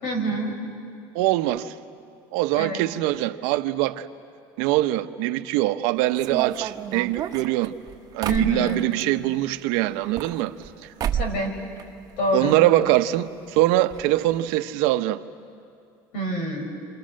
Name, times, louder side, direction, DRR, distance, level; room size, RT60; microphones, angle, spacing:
voice 1, 0.0-0.5 2.6-2.8 8.3-8.8 11.1-11.6 12.2-12.6 16.1-16.7, right 1 dB, 70° left, 5.3 m, -26 dB
voice 2, 1.1-1.7 2.3-4.1 4.6-7.7 8.1-10.5 12.3-15.2, right 15 dB, 80° right, 0.8 m, -23 dB
sound 1, 6.2-9.1 9.9-10.7 11.0-11.5 11.8-12.6 12.8-12.9 13.1-13.2 13.9-14.0 14.3-14.5, right 9 dB, 45° right, 1.0 m, -31 dB
29.0 x 27.0 x 6.4 m
cardioid pair, 125°, 9 cm